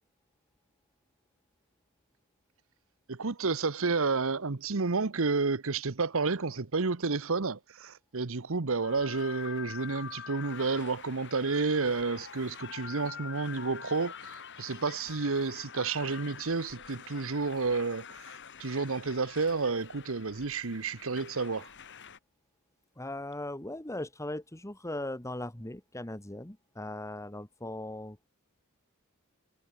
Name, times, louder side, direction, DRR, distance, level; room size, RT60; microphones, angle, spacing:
voice 1, 3.1-21.7, right 4 dB, 65° right, 1.0 m, -31 dB
sound 1, 8.8-22.2, left 7 dB, 55° left, 6.3 m, -46 dB
voice 2, 23.0-28.2, left 1 dB, 15° left, 1.7 m, -39 dB
head